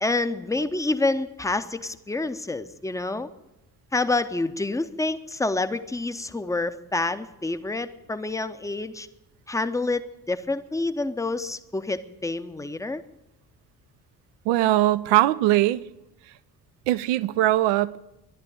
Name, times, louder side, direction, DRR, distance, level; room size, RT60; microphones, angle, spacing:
voice 1, 0.0-3.3 3.9-9.1 9.5-13.0, left 2 dB, 5° left, 0.8 m, -28 dB
voice 2, 14.4-15.8 16.9-18.0, right 15 dB, 55° right, 0.7 m, -21 dB
12.5 x 11.5 x 9.1 m
figure-of-eight pair, 45°, 49 cm